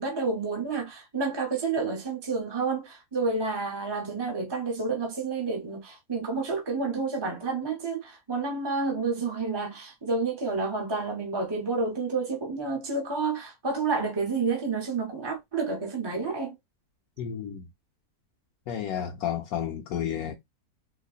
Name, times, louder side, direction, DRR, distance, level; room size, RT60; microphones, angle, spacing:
voice 1, 0.0-16.5, right 4 dB, 30° right, 0.5 m, -29 dB
voice 2, 17.2-17.7 18.7-20.3, left 9 dB, 75° left, 1.0 m, -31 dB
4.0 x 2.8 x 2.4 m
omnidirectional pair, 1.6 m